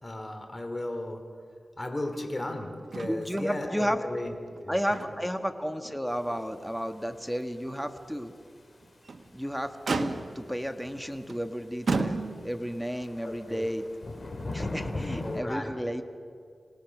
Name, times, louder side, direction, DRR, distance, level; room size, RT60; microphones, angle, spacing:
voice 1, 0.0-1.2 1.8-4.3 4.6-5.0 9.8-10.1 13.2-13.7 15.2-15.7, left 1 dB, 35° left, 5 dB, 3.0 m, -35 dB
Motor vehicle (road), 2.9-3.5 3.8-4.0 4.5-5.4 5.8-6.0 6.5-6.6 8.8-9.3 9.9-10.5 11.3-11.5 11.9-12.7 13.7-13.8, right 4 dB, 75° right, 1.2 m, -32 dB
voice 2, 3.1-4.0 4.7-8.3 9.3-13.8 14.5-16.0, equal, ahead, 7 dB, 1.5 m, -32 dB
sound 1, 6.1-6.2 6.7-6.8 7.1-7.2 7.4-7.6 8.0-8.1 9.3-9.4 9.5-9.6 9.8-10.0 10.4-10.5 10.7-11.3 11.7-15.4, left 2 dB, 55° left, 3.1 m, -38 dB
26.5 x 18.5 x 6.1 m, 2.3 s
wide cardioid pair, 70°, 0 cm